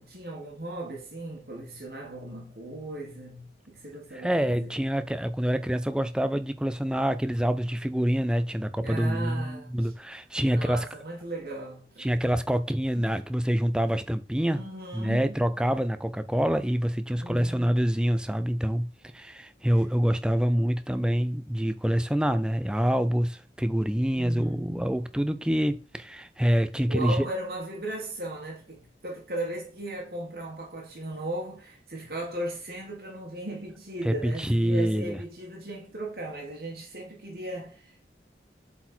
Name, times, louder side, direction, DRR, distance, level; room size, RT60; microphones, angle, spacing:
voice 1, 0.0-4.7 8.8-9.9 10.5-12.0 14.5-15.5 17.2-17.7 24.2-24.9 26.9-38.0, right 1 dB, 55° right, 1.6 m, -37 dB
voice 2, 4.1-10.9 12.0-14.6 14.9-18.9 19.1-27.3 34.0-35.2, equal, 5° right, 0.4 m, -26 dB
7.8 x 4.2 x 4.4 m
head